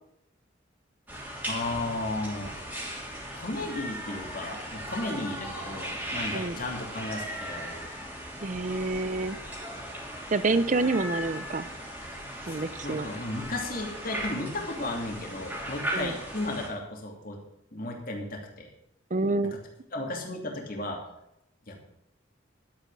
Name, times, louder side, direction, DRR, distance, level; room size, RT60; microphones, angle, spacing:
sound 1, 1.1-16.7, equal, 10° right, 3.0 m, -38 dB
voice 1, 1.4-2.6 3.3-7.9 12.5-17.4 17.7-18.7 19.4-19.6 19.9-21.0 21.7-21.8, left 2 dB, 50° left, 1 dB, 2.7 m, -34 dB
voice 2, 8.4-9.4 10.3-11.7 12.5-13.1 15.9-16.1 19.1-19.5, right 3 dB, 40° right, 14 dB, 0.6 m, -27 dB
12.0 x 8.9 x 6.3 m, 0.82 s
head